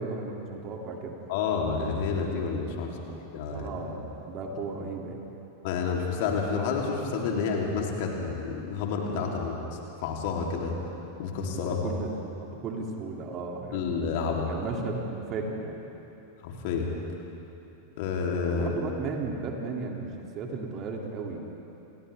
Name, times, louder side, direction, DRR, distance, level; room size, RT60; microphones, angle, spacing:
voice 1, 0.0-1.2 2.9-3.1 3.5-5.2 11.6-12.1 12.4-13.9 14.5-15.8 18.5-21.4, right 4 dB, 35° right, 0 dB, 3.0 m, -35 dB
voice 2, 1.3-3.7 5.6-9.6 10.0-10.7 11.2-11.9 13.7-14.5 16.4-16.9 18.0-18.7, left 5 dB, 50° left, -1 dB, 3.5 m, -29 dB
30.0 x 28.5 x 3.7 m, 3.0 s
figure-of-eight pair, 90°, 0 cm